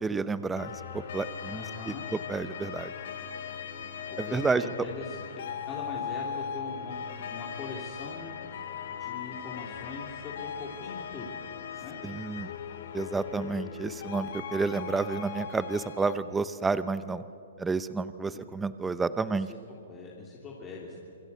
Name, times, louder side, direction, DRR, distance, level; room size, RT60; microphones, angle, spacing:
voice 1, 0.0-2.9 4.2-4.7 12.0-12.5 12.9-17.2 17.6-19.5, right 4 dB, 10° right, 14 dB, 0.7 m, -30 dB
sound 1, 0.6-16.1, left 8 dB, 60° left, 2.5 m, -39 dB
voice 2, 1.4-2.0 4.3-4.4 4.8-8.3 9.0-11.3 11.8-12.0 18.3-18.4 19.2-19.6 19.9-20.9, left 4 dB, 20° left, -3 dB, 3.3 m, -42 dB
27.0 x 22.0 x 8.4 m, 2.6 s
hypercardioid pair, 155°, 0 cm